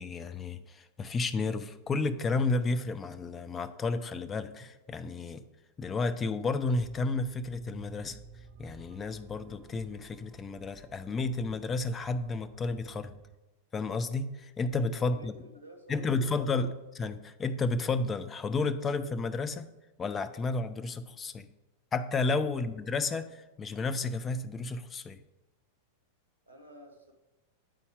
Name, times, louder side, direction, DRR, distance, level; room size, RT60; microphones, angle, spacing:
voice 1, 0.0-5.4 5.8-8.2 8.6-13.1 13.7-15.3 15.9-16.7 17.0-19.7 20.0-21.5 21.9-25.2, left 3 dB, 20° left, 11 dB, 0.5 m, -32 dB
sound 1, 6.8-13.4, right 6 dB, 40° right, 0.5 m, -52 dB
voice 2, 15.0-16.8 22.5-22.6 26.4-27.1, equal, 90° left, 3 dB, 1.1 m, -51 dB
9.0 x 4.1 x 3.5 m, 1.0 s
figure-of-eight pair, 90°, 0 cm